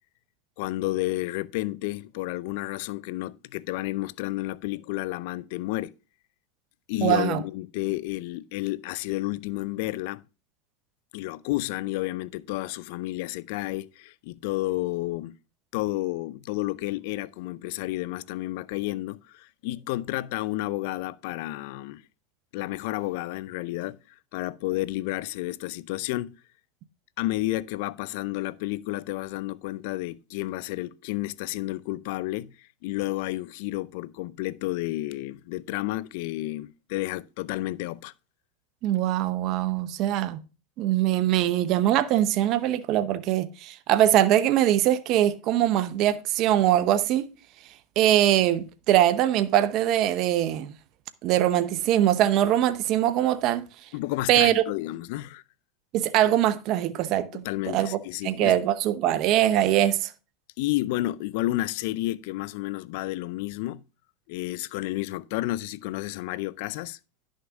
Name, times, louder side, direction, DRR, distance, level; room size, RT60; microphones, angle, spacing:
voice 1, 0.6-5.9 6.9-10.2 11.1-15.4 15.7-22.0 22.5-24.0 24.3-26.4 27.2-38.1 53.9-55.4 57.3-58.5 60.6-63.8 64.3-67.0, left 18 dB, 65° left, 0.4 m, -31 dB
voice 2, 7.0-7.4 38.8-40.4 40.8-47.2 48.0-50.7 51.2-53.7 54.3-54.6 55.9-60.1, right 12 dB, 50° right, 0.7 m, -22 dB
10.5 x 6.4 x 3.5 m
hypercardioid pair, 110°, 0 cm